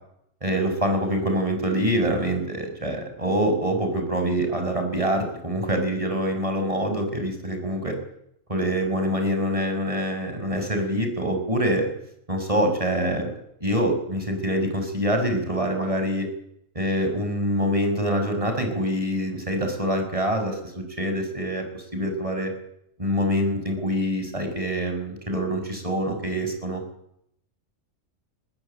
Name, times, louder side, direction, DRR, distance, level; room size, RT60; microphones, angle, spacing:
voice 1, 0.4-7.9 8.5-11.9 12.3-13.3 13.6-16.3 16.7-22.5 23.0-26.8, equal, 25° right, 5 dB, 6.3 m, -25 dB
21.0 x 20.5 x 9.0 m, 0.73 s
omnidirectional pair, 1.3 m